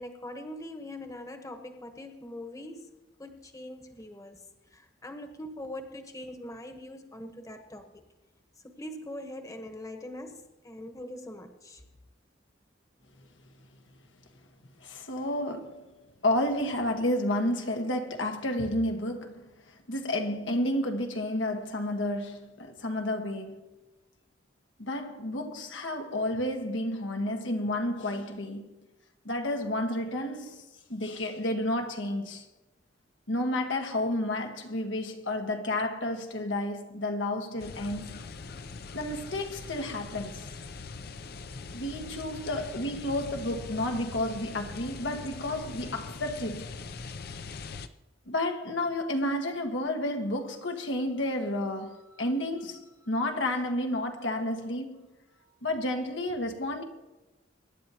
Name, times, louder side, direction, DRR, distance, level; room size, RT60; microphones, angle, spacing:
voice 1, 0.0-2.9 3.2-8.0 8.6-11.8, left 1 dB, 20° left, 1.1 m, -42 dB
voice 2, 14.8-15.8 16.2-23.8 24.8-28.7 29.2-30.6 30.9-32.4 33.3-38.2 38.9-40.5 41.7-46.7 48.3-55.1 55.6-56.8, left 1 dB, 90° left, 1.6 m, -31 dB
sound 1, 37.6-47.9, left 4 dB, 55° left, 0.6 m, -42 dB
24.0 x 10.5 x 2.9 m
head